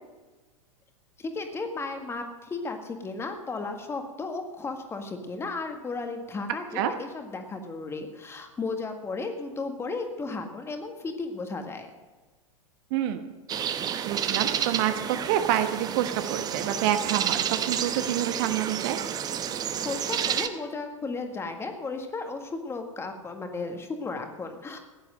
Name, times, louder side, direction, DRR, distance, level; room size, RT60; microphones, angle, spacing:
voice 1, 1.2-11.9 19.8-24.8, left 3 dB, 15° left, 5 dB, 1.7 m, -34 dB
voice 2, 12.9-13.2 13.6-14.9 15.2-19.0, right 11 dB, 45° right, 9 dB, 1.1 m, -28 dB
sound 1, 13.5-20.5, right 9 dB, 25° right, 0.9 m, -30 dB
15.5 x 10.5 x 6.4 m, 1.3 s
figure-of-eight pair, 95°, 17 cm